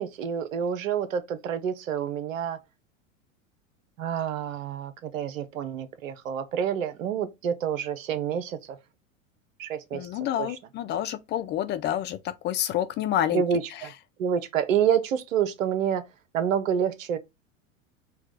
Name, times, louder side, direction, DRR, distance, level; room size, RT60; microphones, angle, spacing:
voice 1, 0.0-2.6 4.0-8.8 9.6-10.1 10.4-10.5 13.3-13.9 14.2-16.1 16.3-17.2, right 8 dB, 75° right, 0.9 m, -28 dB
voice 2, 9.9-12.2 12.4-13.4, left 11 dB, 30° left, 0.4 m, -28 dB
4.6 x 2.3 x 4.7 m
hypercardioid pair, 90°, 40 cm